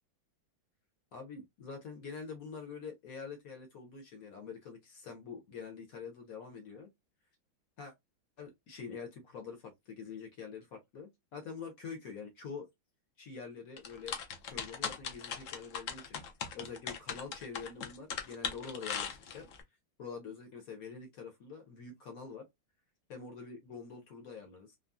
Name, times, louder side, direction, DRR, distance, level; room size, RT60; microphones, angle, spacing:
voice 1, 1.1-6.9 7.8-7.9 8.4-12.7 13.2-14.1 14.5-16.2 16.5-19.5 20.0-22.4 23.1-24.8, left 5 dB, 60° left, 1.0 m, -46 dB
sound 1, 13.8-19.6, left 7 dB, 80° left, 0.7 m, -39 dB
3.8 x 2.0 x 2.2 m
omnidirectional pair, 2.1 m